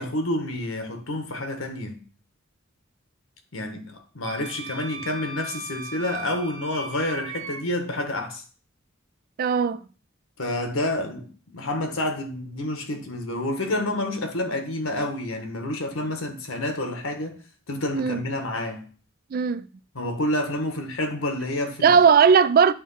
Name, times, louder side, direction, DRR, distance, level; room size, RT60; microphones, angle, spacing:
voice 1, 0.0-2.0 3.5-8.4 10.4-17.4 17.7-18.9 19.9-22.0, left 1 dB, 80° left, 1.5 m, -29 dB
Wind instrument woodwind instrument, 4.2-7.6, right 3 dB, 75° right, 1.3 m, -38 dB
voice 2, 9.4-9.8 17.9-18.2 19.3-19.7 21.8-22.7, right 6 dB, 45° right, 0.3 m, -18 dB
8.7 x 3.1 x 5.6 m
head